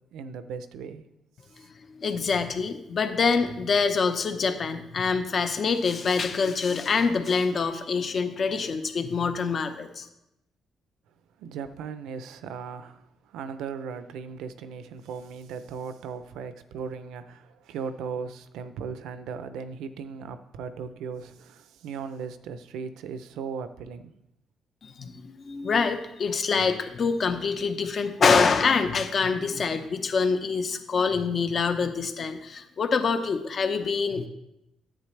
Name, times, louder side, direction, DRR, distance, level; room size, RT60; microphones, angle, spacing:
voice 1, 0.1-1.0 11.4-13.0 13.3-24.1, right 6 dB, 90° right, 11 dB, 0.6 m, -37 dB
voice 2, 2.0-10.1 24.8-34.3, left 5 dB, 50° left, 7 dB, 1.0 m, -25 dB
10.0 x 8.5 x 3.3 m, 0.87 s
cardioid pair, 90°, 0 cm